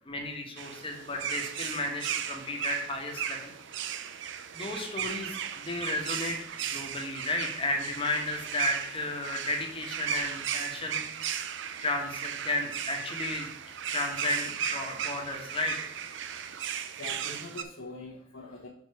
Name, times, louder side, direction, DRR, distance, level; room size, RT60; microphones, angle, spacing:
voice 1, 0.1-3.5 4.5-6.3 6.7-11.1 11.8-13.5 13.9-15.7, left 2 dB, 30° left, 2 dB, 1.2 m, -33 dB
sound 1, 0.6-17.6, right 8 dB, 65° right, 0.5 m, -36 dB
voice 2, 17.0-18.7, left 2 dB, 85° left, -4 dB, 1.2 m, -43 dB
5.7 x 4.7 x 4.8 m, 0.74 s
head